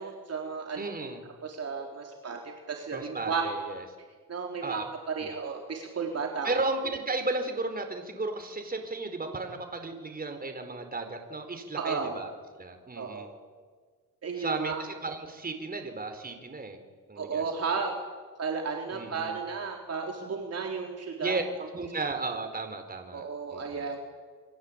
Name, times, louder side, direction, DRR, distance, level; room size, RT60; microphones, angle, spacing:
voice 1, 0.0-0.8 1.4-3.4 4.3-4.8 5.1-6.5 11.8-12.2 13.0-13.3 14.2-14.8 17.2-17.9 18.4-21.4 23.1-24.0, right 5 dB, 45° right, 1 dB, 4.2 m, -33 dB
voice 2, 0.8-1.2 2.9-3.8 4.6-4.8 5.2-5.4 6.4-12.3 12.6-13.3 14.3-16.8 17.1-17.4 18.9-19.4 21.2-23.2 23.5-23.9, right 3 dB, 25° right, 6 dB, 4.5 m, -34 dB
29.0 x 23.0 x 8.9 m, 1.5 s
cardioid pair, 115°, 33 cm